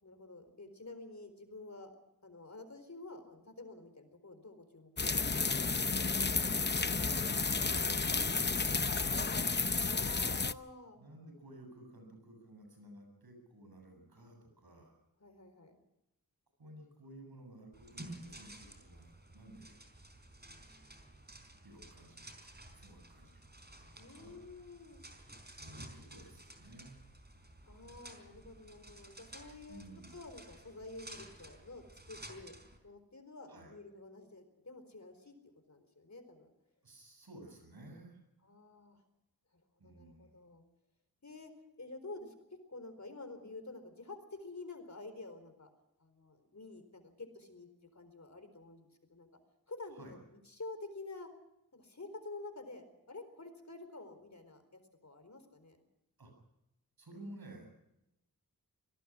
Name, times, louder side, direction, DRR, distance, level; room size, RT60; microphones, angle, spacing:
voice 1, 0.0-1.9 2.2-5.5 9.7-11.0 15.2-15.8 23.9-25.0 27.6-29.8 30.1-32.6 32.8-36.5 38.4-39.0 39.5-40.6 41.2-45.7 46.0-49.3 49.7-51.3 51.7-55.8, left 3 dB, 50° left, 8 dB, 4.3 m, -50 dB
sound 1, 5.0-10.5, left 4 dB, 30° left, 0.7 m, -32 dB
voice 2, 7.3-9.4 11.0-15.0 16.6-19.8 20.4-21.1 21.6-24.4 25.5-27.0 29.7-30.2 33.5-33.8 36.8-38.2 39.8-40.3 50.0-50.1 56.2-56.3 57.0-57.7, right 1 dB, 85° right, 4 dB, 7.5 m, -54 dB
sound 2, 17.7-32.8, right 1 dB, 25° right, 4.4 m, -53 dB
24.5 x 18.0 x 6.2 m, 0.86 s
wide cardioid pair, 50°, 36 cm